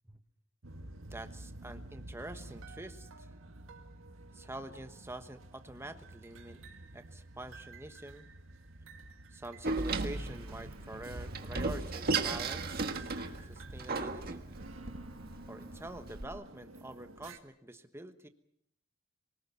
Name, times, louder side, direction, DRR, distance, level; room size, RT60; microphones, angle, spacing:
sound 1, 0.6-17.4, right 2 dB, 90° right, 1.9 m, -49 dB
voice 1, 1.1-3.3 4.3-6.6 6.9-8.3 9.3-13.2 13.5-14.4 15.5-18.3, right 1 dB, 15° right, 8 dB, 1.2 m, -46 dB
Door, 9.6-16.3, right 3 dB, 50° right, 1.6 m, -36 dB
24.5 x 19.5 x 7.1 m, 0.70 s
head